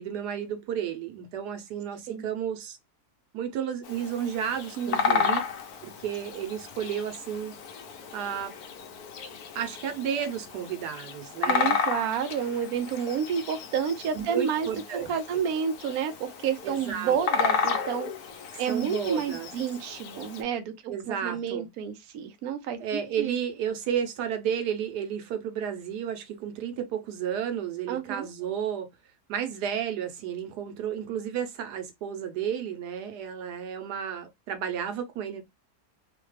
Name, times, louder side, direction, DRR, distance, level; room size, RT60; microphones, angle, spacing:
voice 1, 0.0-2.8 3.3-5.4 5.8-7.6 8.1-8.5 9.5-11.8 14.1-15.1 16.6-17.5 18.7-19.5 20.9-21.7 22.8-28.9 29.3-35.4, right 8 dB, 90° right, 1.3 m, -32 dB
Bird vocalization bird call bird song, 3.8-20.4, left 6 dB, 75° left, 1.1 m, -33 dB
voice 2, 4.8-5.3 11.5-14.7 15.1-18.1 18.6-23.3 27.9-28.3, right 7 dB, 70° right, 1.1 m, -30 dB
3.2 x 2.2 x 3.1 m
omnidirectional pair, 1.7 m